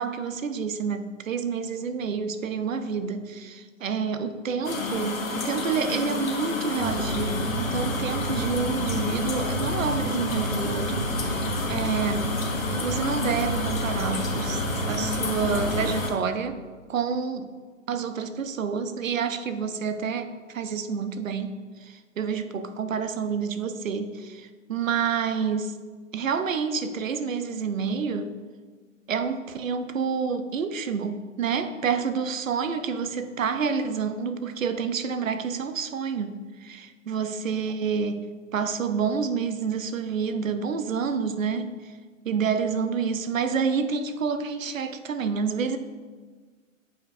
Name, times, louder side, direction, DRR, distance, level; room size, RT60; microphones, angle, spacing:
voice 1, 0.0-12.4 12.8-16.6 16.9-17.5 17.9-25.7 26.1-28.4 29.1-41.9 42.2-45.8, right 6 dB, 75° right, 10 dB, 0.6 m, -28 dB
sound 1, 4.6-16.1, left 3 dB, 80° left, 1.1 m, -30 dB
sound 2, 6.8-15.9, right 1 dB, 50° right, 1.1 m, -31 dB
8.0 x 4.8 x 2.6 m, 1.5 s
figure-of-eight pair, 125°, 40 cm